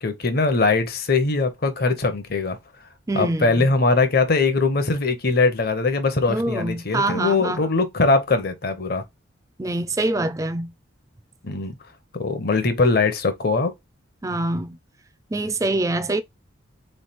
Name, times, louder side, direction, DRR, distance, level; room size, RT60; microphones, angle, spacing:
voice 1, 0.0-2.6 3.1-9.0 11.4-11.7 12.1-13.7, left 3 dB, 50° left, 0.7 m, -21 dB
voice 2, 3.1-3.7 6.3-7.6 9.6-10.7 14.2-14.8 15.3-16.2, right 2 dB, 15° right, 0.3 m, -25 dB
3.6 x 3.2 x 4.2 m
head